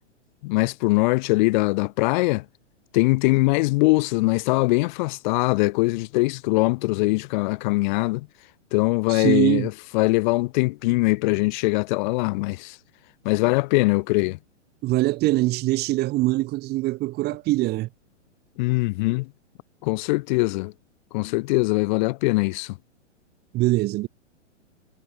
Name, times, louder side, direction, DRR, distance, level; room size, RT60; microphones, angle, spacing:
voice 1, 0.4-2.4 2.9-8.3 8.7-12.7 13.2-14.4 18.6-19.3 19.8-20.7 21.1-22.7, left 23 dB, 40° left, 1.0 m, -22 dB
voice 2, 9.1-9.7 14.8-17.9 23.5-24.1, right 18 dB, 25° right, 1.3 m, -23 dB
hypercardioid pair, 125°, 37 cm